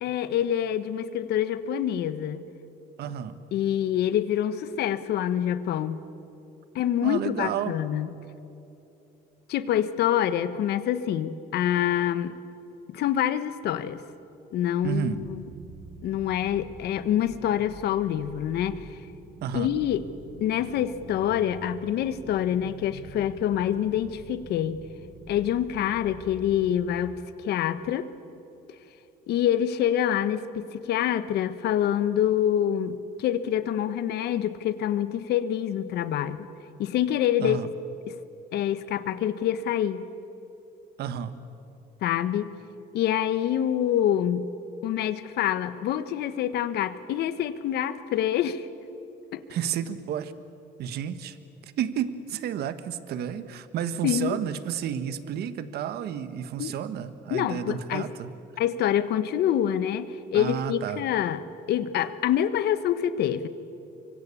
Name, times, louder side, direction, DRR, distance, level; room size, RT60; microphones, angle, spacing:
voice 1, 0.0-2.5 3.5-6.0 6.7-8.1 9.5-12.4 12.9-14.0 14.5-15.4 16.0-18.9 19.5-20.0 20.4-24.8 25.3-28.1 29.3-36.5 36.8-37.6 38.1-38.2 38.5-40.1 42.0-42.5 42.9-44.5 44.8-48.7 49.3-49.4 54.0-54.4 56.6-56.7 57.3-58.1 58.6-61.4 61.7-63.5, left 10 dB, 75° left, 13 dB, 1.3 m, -26 dB
voice 2, 3.0-3.4 7.0-7.8 14.8-15.2 19.4-19.7 37.4-37.7 41.0-41.3 49.5-50.3 50.8-51.4 51.6-58.3 60.3-61.0, right 9 dB, 70° right, 12 dB, 1.3 m, -31 dB
sound 1, 14.8-27.0, right 2 dB, 45° right, 4.4 m, -46 dB
25.0 x 24.0 x 8.4 m, 2.8 s
cardioid pair, 110°, 17 cm